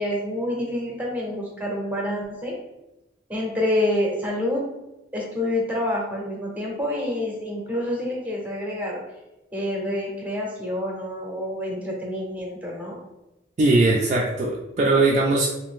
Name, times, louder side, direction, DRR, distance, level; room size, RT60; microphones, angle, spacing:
voice 1, 0.0-2.6 3.3-4.6 5.1-9.0 9.5-13.0, left 1 dB, 10° right, -2 dB, 0.7 m, -27 dB
voice 2, 13.6-15.5, right 2 dB, 40° right, -2 dB, 0.3 m, -20 dB
2.6 x 2.5 x 3.5 m, 0.95 s
head